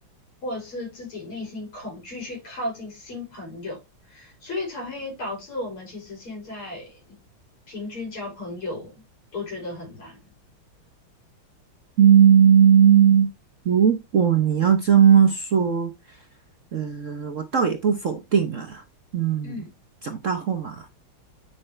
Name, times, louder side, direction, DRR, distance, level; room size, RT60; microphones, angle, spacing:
voice 1, 0.4-7.2 7.7-9.0 9.3-10.3 19.4-19.7, left 2 dB, 85° left, 6.5 m, -35 dB
voice 2, 12.0-13.3 13.6-16.2 16.7-18.8 19.1-19.6 20.0-20.9, right 8 dB, 50° right, 0.9 m, -18 dB
9.6 x 6.0 x 3.2 m
omnidirectional pair, 2.3 m